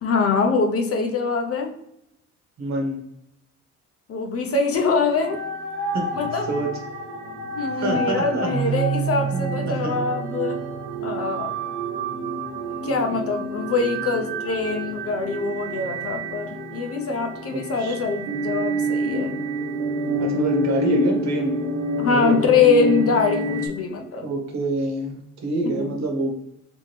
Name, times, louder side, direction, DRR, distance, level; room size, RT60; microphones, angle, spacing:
voice 1, 0.0-1.7 4.1-5.4 6.1-6.5 7.5-10.6 11.0-11.5 12.8-19.3 22.0-24.3 25.6-25.9, left 4 dB, 50° left, 3 dB, 0.8 m, -23 dB
voice 2, 2.6-3.0 5.9-6.0 6.4-6.7 7.7-8.5 9.3-10.0 12.8-13.2 17.5-18.0 20.2-21.6 22.1-22.4 24.2-26.3, right 2 dB, 65° right, 1 dB, 1.2 m, -27 dB
sound 1, 4.8-23.7, right 1 dB, 90° right, 1.1 m, -28 dB
Keyboard (musical), 8.5-11.4, right 9 dB, 25° right, 0.5 m, -29 dB
3.4 x 3.0 x 3.3 m, 0.79 s
cardioid pair, 90°, 30 cm